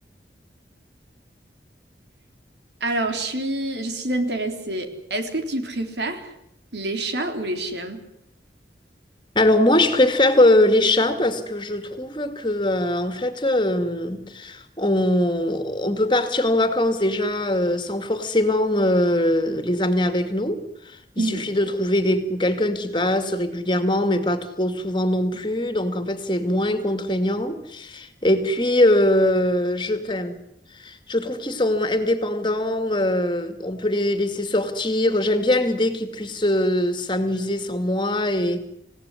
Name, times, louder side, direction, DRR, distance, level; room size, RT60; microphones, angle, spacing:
voice 1, 2.8-6.3 6.7-8.0 21.2-21.5, right 2 dB, 80° right, 5 dB, 3.7 m, -27 dB
voice 2, 9.3-20.6 20.9-30.4 30.8-38.6, left 1 dB, 25° left, 9 dB, 2.4 m, -22 dB
28.0 x 17.5 x 9.9 m, 0.81 s
head